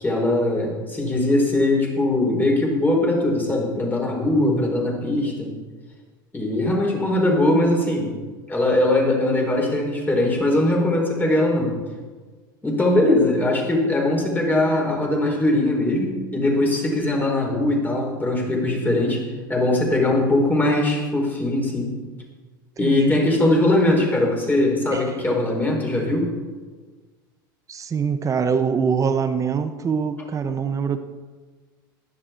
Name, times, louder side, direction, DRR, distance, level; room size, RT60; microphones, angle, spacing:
voice 1, 0.0-5.5 6.3-8.1 8.5-11.7 12.6-19.2 19.5-21.9 22.8-26.3, left 1 dB, 15° left, 0 dB, 4.4 m, -21 dB
voice 2, 22.8-23.2 24.9-25.0 27.7-31.0, right 6 dB, 30° right, 9 dB, 1.1 m, -24 dB
15.5 x 11.0 x 4.5 m, 1.4 s
hypercardioid pair, 90°, 11 cm